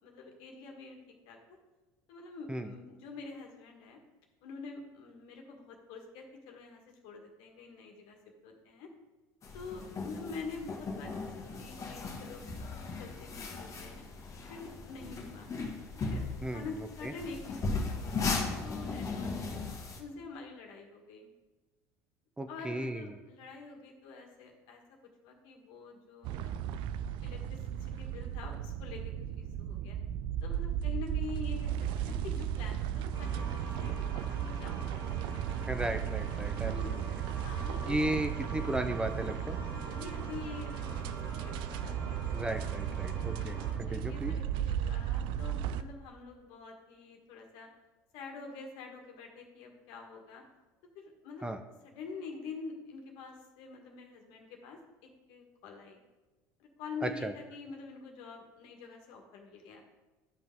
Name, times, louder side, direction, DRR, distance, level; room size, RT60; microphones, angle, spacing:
voice 1, 0.0-1.4 2.1-4.0 4.4-8.2 8.4-8.9 9.5-14.0 14.5-15.5 16.1-16.2 16.5-19.6 20.0-21.3 22.5-24.8 25.2-26.6 27.2-30.0 30.4-35.2 36.6-37.0 37.3-38.1 39.9-40.9 41.3-42.2 43.4-43.5 43.9-47.7 48.1-50.4 50.9-51.5 51.8-56.0 56.6-59.8, left 4 dB, 70° left, 2 dB, 1.7 m, -46 dB
sound 1, 9.4-20.0, left 3 dB, 35° left, 1.5 m, -37 dB
voice 2, 22.4-23.1 35.7-37.0 37.9-39.6 42.3-44.4 51.4-51.6 57.0-57.3, right 1 dB, 10° right, 7 dB, 0.6 m, -35 dB
sound 2, 26.2-45.8, right 9 dB, 65° right, 0.4 m, -35 dB
sound 3, 33.1-43.7, right 1 dB, 50° right, 2.6 m, -46 dB
11.0 x 5.6 x 3.7 m, 1.2 s
hypercardioid pair, 80°, 9 cm